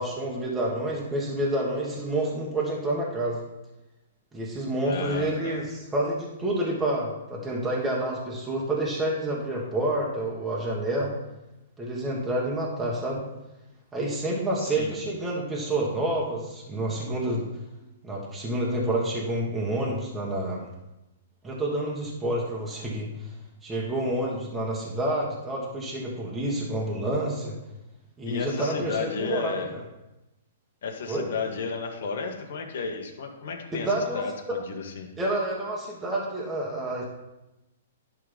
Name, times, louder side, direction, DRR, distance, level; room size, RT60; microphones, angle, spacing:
voice 1, 0.0-3.4 4.3-11.1 11.8-13.2 13.9-17.5 18.0-20.6 21.4-23.1 23.6-27.6 28.2-29.6 31.1-31.3 33.7-34.2 35.2-37.0, right 1 dB, 10° right, -4 dB, 1.6 m, -28 dB
voice 2, 4.8-5.6 14.6-15.0 28.2-29.7 30.8-35.1, left 5 dB, 65° left, 4 dB, 1.4 m, -33 dB
11.0 x 3.9 x 5.2 m, 0.96 s
hypercardioid pair, 140°, 0 cm